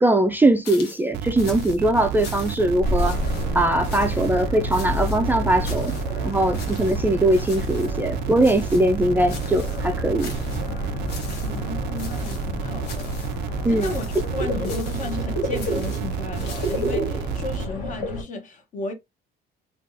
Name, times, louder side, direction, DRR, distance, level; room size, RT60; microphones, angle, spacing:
voice 1, 0.0-3.2 3.5-5.9 6.2-10.3 13.6-13.9, right 1 dB, 10° right, 0.4 m, -21 dB
sound 1, 0.6-1.1 1.4-1.8 2.2-2.7 3.0-3.5 3.8-4.3 4.7-5.2 5.6-6.1 6.5-7.0 7.3-7.9 8.4-8.9 9.3-9.8 10.2-10.7 11.1-11.7 12.0-12.5 12.8-13.4 13.8-14.3 14.6-15.2 15.6-17.0, left 5 dB, 85° left, 1.0 m, -42 dB
sound 2, 1.1-17.7, right 8 dB, 80° right, 0.4 m, -31 dB
sound 3, 2.8-18.2, left 1 dB, 65° left, 2.1 m, -30 dB
voice 2, 11.4-13.2 13.5-18.9, left 3 dB, 50° left, 1.0 m, -34 dB
3.5 x 2.4 x 2.6 m
cardioid pair, 110°, 17 cm